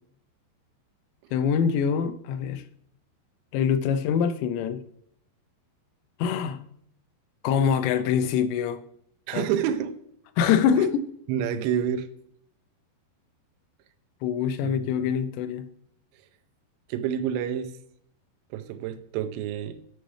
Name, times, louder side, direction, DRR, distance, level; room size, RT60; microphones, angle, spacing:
voice 1, 1.3-2.6 3.5-4.8 6.2-6.6 7.4-8.8 9.3-9.5 10.4-11.0 14.2-15.7, left 7 dB, 90° left, 2.9 m, -24 dB
voice 2, 9.3-9.9 10.8-10.9 11.3-12.1 14.6-14.8 16.9-17.8 18.5-19.8, right 9 dB, 90° right, 2.9 m, -28 dB
8.9 x 6.4 x 3.3 m
omnidirectional pair, 5.0 m